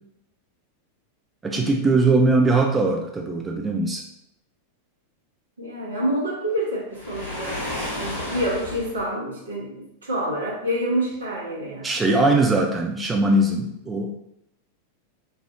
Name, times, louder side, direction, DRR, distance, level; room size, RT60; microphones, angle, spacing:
voice 1, 1.4-4.0 11.8-14.1, right 2 dB, 15° right, 1 dB, 0.3 m, -20 dB
voice 2, 5.6-7.6 7.9-11.9, right 1 dB, 70° right, -3 dB, 0.8 m, -27 dB
Waves surf, 6.9-9.0, left 1 dB, 70° left, 1.2 m, -32 dB
3.2 x 2.4 x 2.5 m, 0.80 s
figure-of-eight pair, 90°, 0 cm